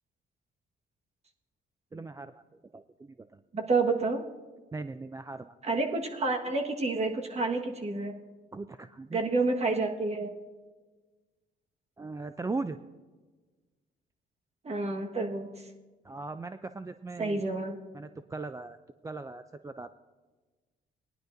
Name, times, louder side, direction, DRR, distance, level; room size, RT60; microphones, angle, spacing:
voice 1, 1.9-2.3 2.7-3.4 4.7-5.6 8.5-9.2 12.0-12.8 16.0-17.4 17.9-18.8 19.0-19.9, right 3 dB, 15° right, 11 dB, 0.4 m, -39 dB
voice 2, 3.5-4.2 5.6-8.1 9.1-10.3 14.6-15.5 17.2-17.8, right 3 dB, 35° right, 3 dB, 1.5 m, -29 dB
18.5 x 11.0 x 2.6 m, 1.3 s
cardioid pair, 90°, 20 cm